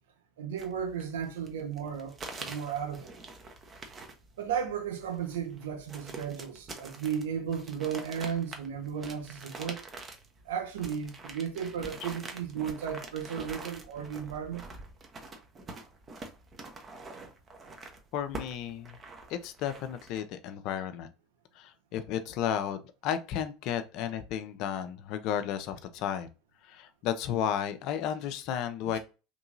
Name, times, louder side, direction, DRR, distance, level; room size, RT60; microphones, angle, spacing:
voice 1, 0.4-3.1 4.4-9.8 10.4-14.6 28.9-29.0, right 8 dB, 75° right, 0.9 m, -34 dB
sound 1, 0.6-20.2, right 3 dB, 30° right, 0.7 m, -46 dB
voice 2, 18.1-19.0 19.3-21.1 21.6-26.3 26.6-29.0, left 9 dB, 55° left, 0.4 m, -33 dB
3.0 x 2.7 x 2.6 m
figure-of-eight pair, 70°, 0 cm